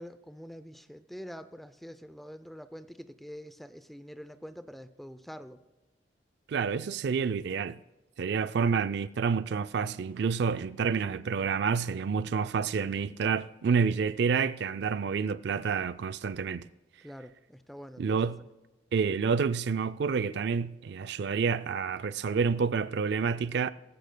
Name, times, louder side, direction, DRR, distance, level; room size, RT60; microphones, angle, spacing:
voice 1, 0.0-5.6 17.0-18.3, equal, ahead, 0.5 m, -45 dB
voice 2, 6.5-7.8 8.2-16.7 18.0-18.4 18.9-23.7, right 5 dB, 60° right, 0.4 m, -28 dB
18.5 x 15.5 x 2.2 m
head